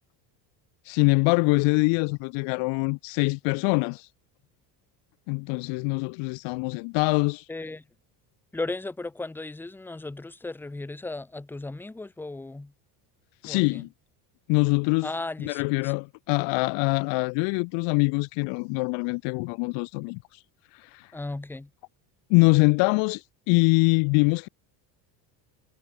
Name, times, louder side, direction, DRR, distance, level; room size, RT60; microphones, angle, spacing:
voice 1, 0.8-4.1 5.3-7.5 13.4-13.9 14.5-15.1 15.4-20.4 20.7-21.1 22.3-24.5, left 33 dB, 65° left, 0.6 m, -24 dB
voice 2, 7.5-7.8 8.5-12.7 13.5-13.8 15.0-15.9 21.1-21.7, left 2 dB, 5° left, 0.6 m, -36 dB
cardioid pair, 130°, 48 cm